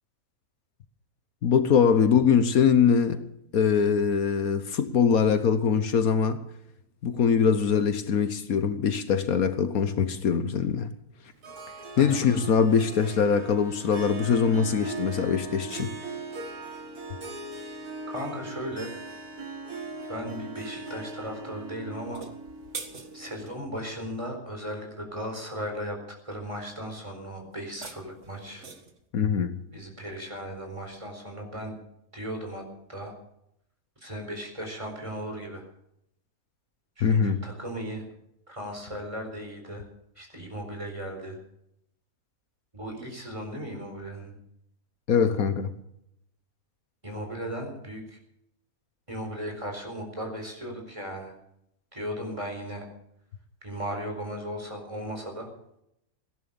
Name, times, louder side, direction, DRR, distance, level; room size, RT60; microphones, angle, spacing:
voice 1, 1.4-3.2 3.5-6.4 7.0-10.9 12.0-15.9 29.1-29.6 37.0-37.4 45.1-45.7, left 6 dB, 70° left, 11 dB, 1.5 m, -23 dB
Harp, 11.4-23.6, right 3 dB, 85° right, 2.7 m, -39 dB
voice 2, 12.0-12.4 18.1-18.9 20.1-22.2 23.1-28.7 29.7-31.8 32.1-33.1 34.0-35.7 37.0-38.1 38.5-39.9 40.2-41.4 42.7-44.4 47.0-48.2 49.1-51.4 51.9-52.9 53.6-55.5, equal, 20° right, 2 dB, 4.4 m, -36 dB
sound 1, 22.0-23.6 27.5-29.0, right 4 dB, 50° right, 2.0 m, -43 dB
17.0 x 11.0 x 6.9 m, 0.78 s
omnidirectional pair, 1.6 m